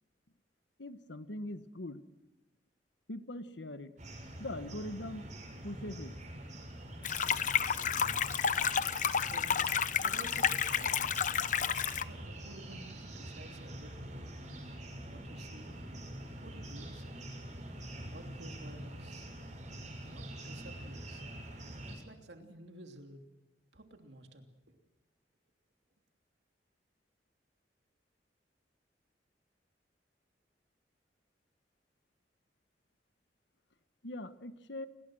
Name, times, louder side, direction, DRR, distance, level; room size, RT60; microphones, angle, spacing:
voice 1, 0.8-2.0 3.1-3.9 4.4-5.3 5.6-6.2 34.0-34.9, left 1 dB, 85° left, 11 dB, 1.4 m, -41 dB
sound 1, 4.0-22.0, right 1 dB, 45° right, 6.8 m, -45 dB
sound 2, 7.0-12.0, left 7 dB, 45° left, 0.9 m, -31 dB
voice 2, 7.9-8.4 9.2-9.7 10.0-11.2 12.0-14.1 15.1-15.8 16.4-17.4 18.0-19.3 20.1-21.2 21.9-23.2 23.7-24.8, right 1 dB, 70° right, 4 dB, 3.1 m, -52 dB
28.5 x 20.5 x 6.3 m, 1.0 s
head